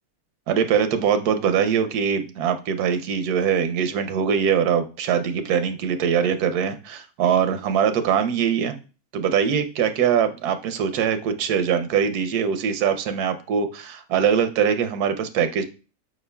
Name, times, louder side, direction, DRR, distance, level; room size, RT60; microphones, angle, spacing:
voice 1, 0.5-8.8 9.1-15.6, right 7 dB, 85° right, 9 dB, 1.2 m, -22 dB
4.9 x 4.5 x 2.2 m, 0.33 s
omnidirectional pair, 1.6 m